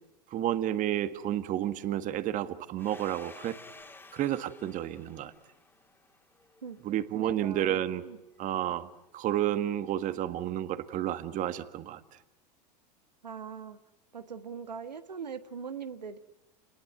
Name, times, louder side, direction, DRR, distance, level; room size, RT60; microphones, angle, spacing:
voice 1, 0.3-3.6 4.1-5.3 6.8-8.0 8.4-12.0, right 12 dB, 40° right, 12 dB, 1.7 m, -31 dB
Domestic sounds home sounds, 2.8-7.2, left 3 dB, 10° left, 2.9 m, -53 dB
voice 2, 6.6-7.8 8.0-8.2 13.2-13.8 14.1-16.2, right 6 dB, 85° right, 10 dB, 1.5 m, -41 dB
29.5 x 20.5 x 9.3 m, 0.97 s
figure-of-eight pair, 85°, 21 cm